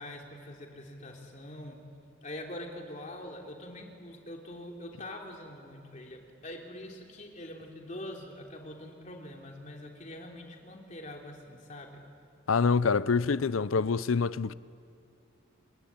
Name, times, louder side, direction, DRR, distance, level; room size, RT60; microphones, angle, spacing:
voice 1, 0.0-1.8 2.2-12.0, left 1 dB, 40° left, 3.2 m, -44 dB
voice 2, 12.5-14.5, left 5 dB, 85° left, 0.6 m, -26 dB
28.5 x 21.0 x 8.8 m
head